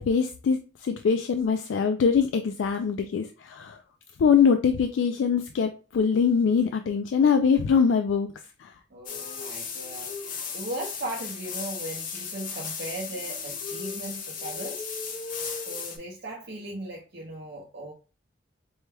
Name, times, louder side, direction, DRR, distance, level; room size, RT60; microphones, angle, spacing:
voice 1, 0.0-3.8 4.2-8.3 8.6-8.7, left 6 dB, 75° left, 6 dB, 0.3 m, -23 dB
voice 2, 8.9-14.8 15.6-17.9, right 1 dB, 55° right, -2 dB, 0.7 m, -38 dB
sound 1, 9.1-16.0, left 5 dB, 45° left, 0.7 m, -35 dB
4.5 x 2.2 x 3.3 m, 0.34 s
head